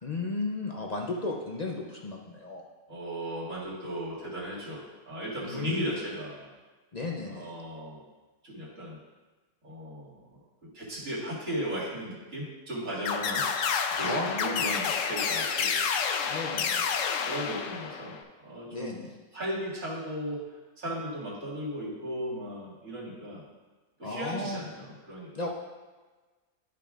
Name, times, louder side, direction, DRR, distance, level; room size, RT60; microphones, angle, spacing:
voice 1, 0.0-2.6 5.4-5.9 6.9-7.5 14.0-14.7 16.3-16.9 18.7-19.1 24.0-24.7 25.3-25.5, left 3 dB, 45° left, -1 dB, 0.5 m, -34 dB
voice 2, 2.9-6.5 7.3-8.0 8.4-9.0 9.6-10.4 10.7-13.4 14.0-15.7 16.4-16.7 17.3-19.1 19.3-20.4 20.8-23.4 24.0-25.5, equal, 55° right, -8 dB, 2.7 m, -36 dB
sound 1, 13.0-18.2, left 6 dB, 70° left, 0.9 m, -29 dB
12.0 x 5.8 x 2.5 m, 1.3 s
omnidirectional pair, 1.6 m